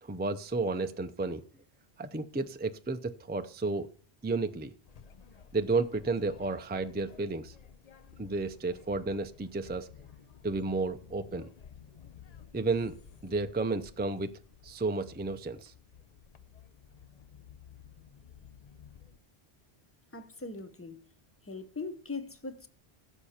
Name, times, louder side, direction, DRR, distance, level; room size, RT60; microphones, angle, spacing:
voice 1, 0.0-1.4 2.0-3.9 4.2-4.7 5.5-7.5 8.2-9.9 10.4-11.5 12.5-12.9 13.2-14.3 14.6-15.7, right 3 dB, 10° right, 0.5 m, -32 dB
sound 1, 4.8-19.2, left 8 dB, 45° left, 0.6 m, -54 dB
voice 2, 20.1-21.1 21.4-22.7, left 3 dB, 15° left, 0.8 m, -40 dB
15.0 x 6.9 x 4.3 m
omnidirectional pair, 1.1 m